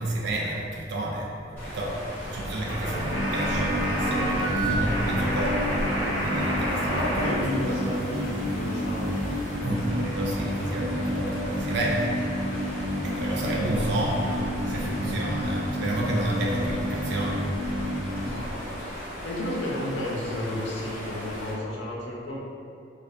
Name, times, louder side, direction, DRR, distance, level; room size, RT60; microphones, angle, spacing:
voice 1, 0.0-2.0 2.2-5.8 6.2-7.3 7.7-7.8 9.6-12.1 13.0-17.5, right 1 dB, 60° right, -2 dB, 0.4 m, -31 dB
sound 1, 1.6-21.5, equal, 10° left, 0.8 m, -36 dB
sound 2, 2.7-7.3 7.6-9.6, right 1 dB, 45° left, 0.9 m, -30 dB
sound 3, 3.0-18.2, equal, 20° right, 0.6 m, -30 dB
voice 2, 6.8-9.2 13.3-13.9 18.2-18.8 19.2-22.4, left 1 dB, 70° left, -4 dB, 0.5 m, -32 dB
2.4 x 2.3 x 2.3 m, 2.4 s
head